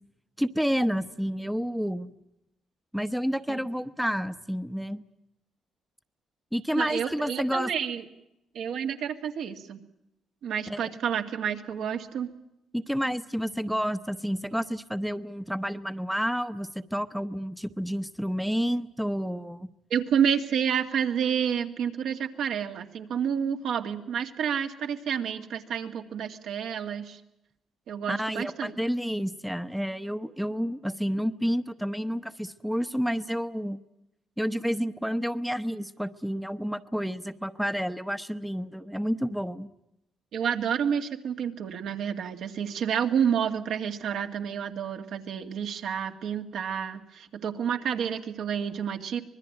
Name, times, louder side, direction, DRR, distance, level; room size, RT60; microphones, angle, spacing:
voice 1, 0.4-2.1 2.9-5.0 6.5-7.7 10.7-10.9 12.7-19.7 28.1-33.8 34.4-39.7, equal, ahead, 10 dB, 0.9 m, -30 dB
voice 2, 6.7-8.1 8.5-9.8 10.4-12.3 19.9-27.2 27.9-28.7 40.3-49.2, right 8 dB, 75° right, 5 dB, 2.2 m, -29 dB
25.5 x 20.0 x 8.8 m, 0.87 s
cardioid pair, 90°, 0 cm